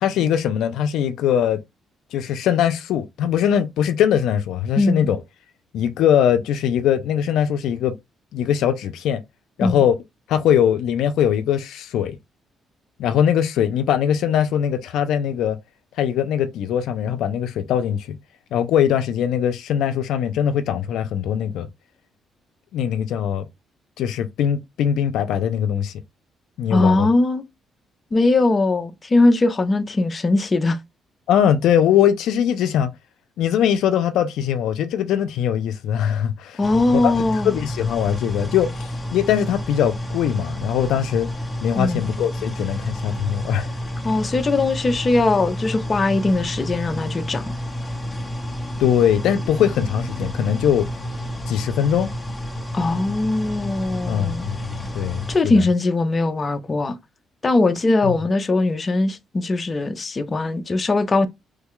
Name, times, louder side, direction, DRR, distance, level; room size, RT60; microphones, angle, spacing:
voice 1, 0.0-1.6 2.1-5.2 5.7-7.9 8.3-9.2 9.6-10.0 10.3-12.2 13.0-15.6 16.0-18.2 18.5-21.7 22.7-23.5 24.0-25.9 26.6-27.1 31.3-32.9 33.4-36.6 37.0-41.3 41.6-43.7 48.8-50.9 51.5-52.1 54.1-55.6 58.0-58.1, left 9 dB, 85° left, 0.4 m, -21 dB
voice 2, 4.8-5.1 9.6-9.8 26.7-27.4 28.1-30.8 36.6-37.5 41.7-42.1 44.0-47.4 52.7-54.5 55.3-57.0 57.4-61.3, left 2 dB, 30° left, 0.5 m, -20 dB
sound 1, 36.6-55.4, equal, 5° left, 0.9 m, -30 dB
3.2 x 2.2 x 3.6 m
cardioid pair, 90°, 0 cm